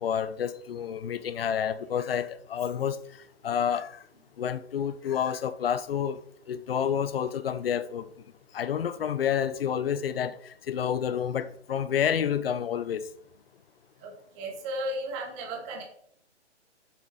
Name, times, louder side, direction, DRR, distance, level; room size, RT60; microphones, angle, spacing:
voice 1, 0.0-3.0 3.4-4.0 4.4-6.2 6.5-8.1 8.5-13.0, left 8 dB, 55° left, 0.8 m, -29 dB
voice 2, 14.0-15.8, right 1 dB, 25° right, 1.9 m, -35 dB
7.2 x 7.2 x 4.6 m
figure-of-eight pair, 135°, 34 cm